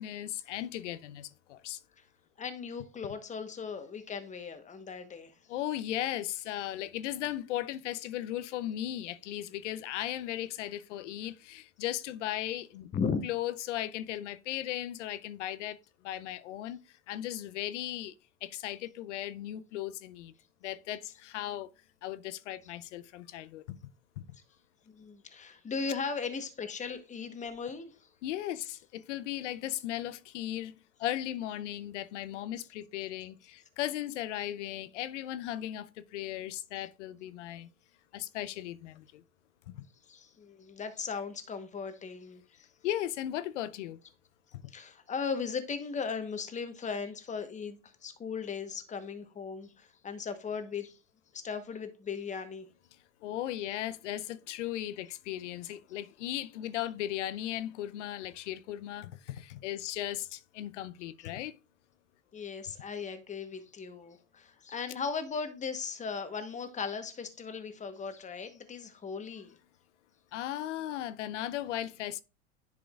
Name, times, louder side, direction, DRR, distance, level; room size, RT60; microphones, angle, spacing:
voice 1, 0.0-1.8 5.5-12.9 13.2-15.8 16.0-18.1 18.4-20.3 20.6-21.7 22.0-23.8 24.2-24.3 28.2-37.7 38.1-39.2 39.7-39.9 42.8-44.0 44.5-44.7 53.2-61.5 70.3-72.2, left 13 dB, 70° left, 0.7 m, -37 dB
voice 2, 2.4-5.3 12.9-13.2 24.9-28.1 36.8-36.9 40.1-42.7 44.7-51.0 51.3-52.7 62.3-69.6, left 5 dB, 20° left, 1.1 m, -37 dB
10.5 x 4.9 x 2.4 m
hypercardioid pair, 100°, 38 cm